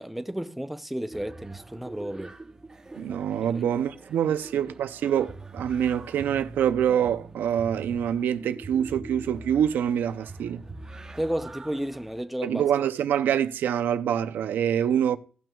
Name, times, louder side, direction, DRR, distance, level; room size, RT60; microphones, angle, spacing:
voice 1, 0.0-2.3 3.4-3.6 4.6-4.7 11.2-12.6, right 1 dB, 5° right, 0.6 m, -32 dB
sound 1, 1.1-12.2, right 3 dB, 20° right, 1.0 m, -44 dB
voice 2, 3.0-10.6 12.4-15.2, right 9 dB, 90° right, 0.6 m, -25 dB
17.0 x 6.1 x 2.4 m
cardioid pair, 120°, 3 cm